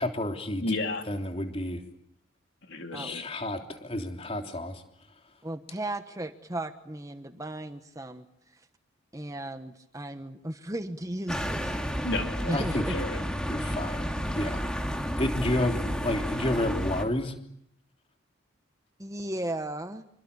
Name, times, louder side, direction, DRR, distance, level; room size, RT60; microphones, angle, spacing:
voice 1, 0.0-0.6 1.1-1.8 2.9-4.8 12.5-13.1 13.5-14.7 15.2-17.3, left 1 dB, 30° left, 4 dB, 3.4 m, -30 dB
voice 2, 0.6-1.1 2.6-3.2 12.0-13.2, left 2 dB, 60° left, 4 dB, 3.9 m, -33 dB
voice 3, 5.4-8.3 8.5-8.6 9.1-12.0 12.5-13.0 19.0-20.1, right 1 dB, 15° right, 9 dB, 1.2 m, -35 dB
sound 1, 11.3-17.1, equal, 5° left, 3.2 m, -31 dB
28.0 x 24.5 x 8.5 m, 0.70 s
head